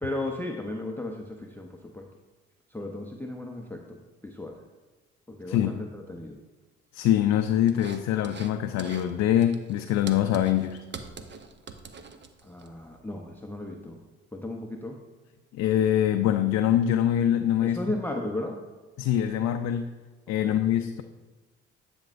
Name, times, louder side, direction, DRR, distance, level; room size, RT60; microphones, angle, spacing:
voice 1, 0.0-2.0 2.7-4.6 5.3-6.4 12.4-14.0 14.3-15.0 17.6-18.6 20.4-20.6, left 1 dB, 5° left, 2 dB, 0.7 m, -35 dB
voice 2, 6.9-10.8 15.5-17.8 19.0-19.9 20.3-21.0, left 11 dB, 55° left, 7 dB, 0.5 m, -24 dB
sound 1, 7.7-8.5 8.8-9.1 9.4-12.7, right 5 dB, 35° right, 0.8 m, -43 dB
10.5 x 6.1 x 2.5 m, 1.3 s
hypercardioid pair, 55°, 32 cm